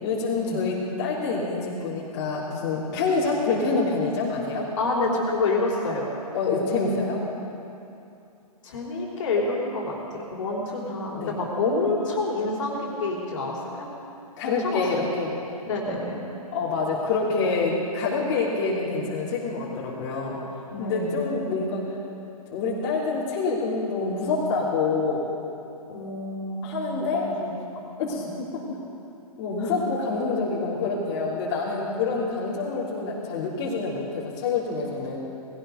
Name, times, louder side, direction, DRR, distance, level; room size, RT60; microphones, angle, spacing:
voice 1, 0.0-4.7 6.3-7.2 11.2-11.3 14.4-15.3 16.5-20.4 20.8-21.8 22.5-25.3 26.6-27.3 28.0-28.2 29.4-35.2, left 4 dB, 35° left, -7 dB, 3.4 m, -26 dB
voice 2, 4.8-6.1 8.6-13.9 14.4-14.8 15.6-16.2 20.7-21.1 25.9-27.5 28.1-28.3 29.6-29.8 32.1-32.3, left 2 dB, 50° left, -3 dB, 3.9 m, -28 dB
20.0 x 17.0 x 4.0 m, 2.7 s
figure-of-eight pair, 130°, 20 cm